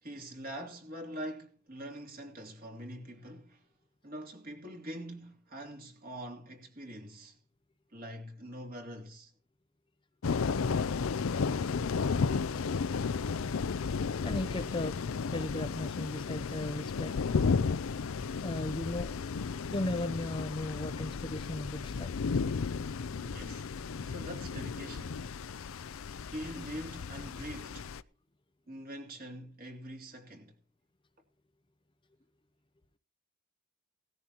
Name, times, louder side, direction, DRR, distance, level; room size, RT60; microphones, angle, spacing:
voice 1, 0.0-3.6 4.0-7.4 7.9-9.3 23.1-23.7 24.0-25.3 26.3-27.9 28.7-30.6, right 1 dB, 45° right, 2.9 m, -44 dB
sound 1, 10.2-28.0, left 5 dB, 85° left, 0.5 m, -33 dB
voice 2, 14.2-15.0 15.3-17.1 18.4-19.1 19.7-22.1, left 1 dB, 25° left, 0.6 m, -36 dB
18.0 x 13.5 x 2.9 m
head